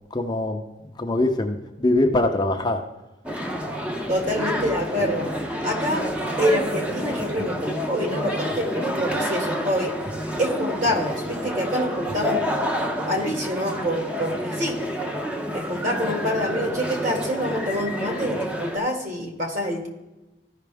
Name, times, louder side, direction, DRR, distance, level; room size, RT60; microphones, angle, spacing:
voice 1, 0.1-0.6 1.0-2.8, left 1 dB, 25° left, 3 dB, 0.6 m, -22 dB
sound 1, 3.3-18.8, equal, 5° right, 0.7 m, -29 dB
voice 2, 4.1-5.3 5.6-6.1 6.4-9.9 10.4-12.4 13.0-14.8 15.5-19.9, equal, 45° right, 1 dB, 2.1 m, -26 dB
14.5 x 5.7 x 3.5 m, 1.1 s
head